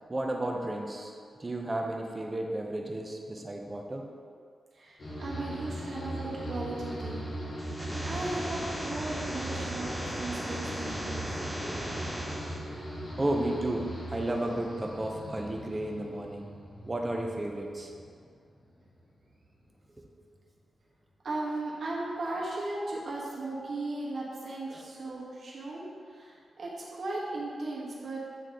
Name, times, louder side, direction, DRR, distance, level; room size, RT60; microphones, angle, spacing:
voice 1, 0.1-4.1 11.4-12.0 12.3-12.5 13.2-16.5 16.8-17.9 24.7-24.8, right 1 dB, 25° right, 1 dB, 0.8 m, -33 dB
voice 2, 4.7-7.3 8.0-11.3 21.2-28.2, right 2 dB, 65° right, -5 dB, 1.3 m, -36 dB
sound 1, 5.0-18.3 18.6-19.3, equal, 60° left, 1.5 m, -39 dB
sound 2, 7.6-12.6, equal, 5° right, 1.3 m, -37 dB
8.3 x 3.1 x 3.9 m, 2.2 s
cardioid pair, 80°, 0 cm